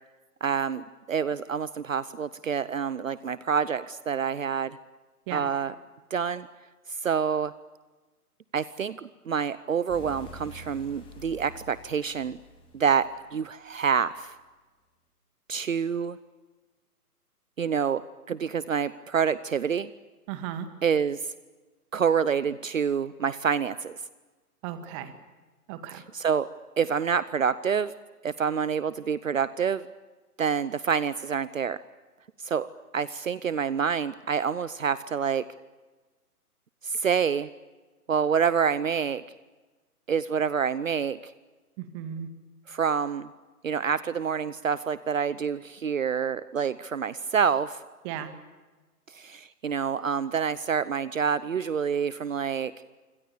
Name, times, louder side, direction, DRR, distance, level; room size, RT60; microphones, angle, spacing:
voice 1, 0.4-4.8 5.3-5.7 6.1-6.5 6.9-7.5 8.5-12.4 12.7-14.3 15.5-16.2 17.6-19.9 20.8-21.2 21.9-24.0 25.9-26.5 26.8-27.9 28.2-29.9 30.4-31.8 32.4-35.4 36.8-37.5 38.1-39.2 40.1-41.3 42.7-43.3 43.6-47.8 49.1-52.7, right 6 dB, 55° right, 17 dB, 0.9 m, -27 dB
sound 1, 9.9-13.4, left 1 dB, 10° left, 3.8 m, -47 dB
voice 2, 20.3-20.7 24.6-25.1 25.7-26.0 41.8-42.3 48.0-48.3, right 10 dB, 20° right, 9 dB, 1.9 m, -35 dB
29.5 x 26.0 x 7.0 m, 1.2 s
figure-of-eight pair, 130°, 46 cm